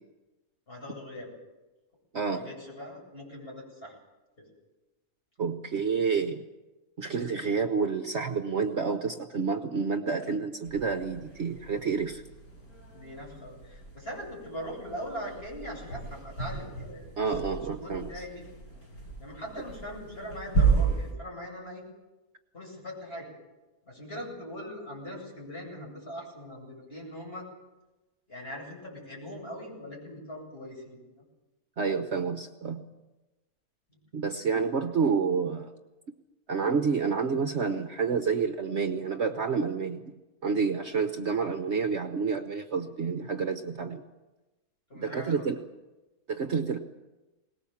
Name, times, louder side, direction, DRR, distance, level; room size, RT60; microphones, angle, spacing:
voice 1, 0.7-1.3 2.3-3.9 4.4-4.5 7.5-7.6 12.9-17.4 17.7-18.4 19.2-21.8 22.5-23.3 23.8-27.5 28.3-31.0 33.9-34.0 44.9-45.5, equal, 40° left, -2 dB, 8.3 m, -41 dB
voice 2, 2.1-2.5 5.4-6.4 7.0-12.2 17.2-18.1 31.8-32.8 34.1-35.7 36.5-40.1 40.4-44.0 44.9-45.5 46.3-46.8, right 5 dB, 50° right, 7 dB, 1.1 m, -29 dB
sound 1, 10.6-21.1, right 5 dB, 70° left, 5.5 m, -33 dB
22.0 x 19.5 x 7.3 m, 1.1 s
omnidirectional pair, 1.6 m